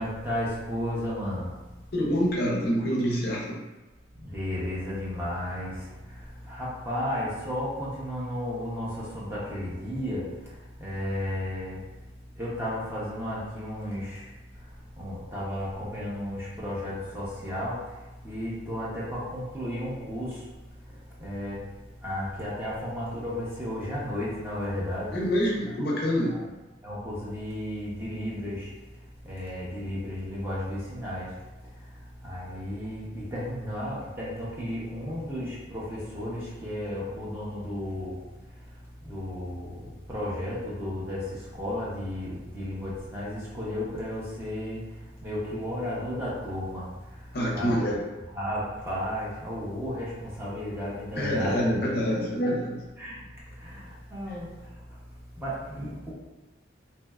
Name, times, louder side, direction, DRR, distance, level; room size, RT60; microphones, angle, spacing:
voice 1, 0.0-1.5 4.2-5.7 6.5-10.2 10.8-11.8 12.4-14.2 15.0-17.8 18.2-20.3 21.2-21.6 22.0-25.2 26.3-26.4 26.8-28.7 29.2-31.3 32.2-38.2 39.0-39.8 40.1-41.2 41.6-44.8 45.2-46.8 47.5-47.9 48.3-51.6 53.0-53.2 53.6-53.8 54.1-54.5 55.4-56.1, left 1 dB, 10° right, -8 dB, 0.5 m, -33 dB
voice 2, 1.9-3.6 25.1-26.4 47.3-48.1 51.1-52.8 54.3-54.4, equal, 55° left, -3 dB, 0.5 m, -26 dB
2.7 x 2.1 x 2.2 m, 1.1 s
head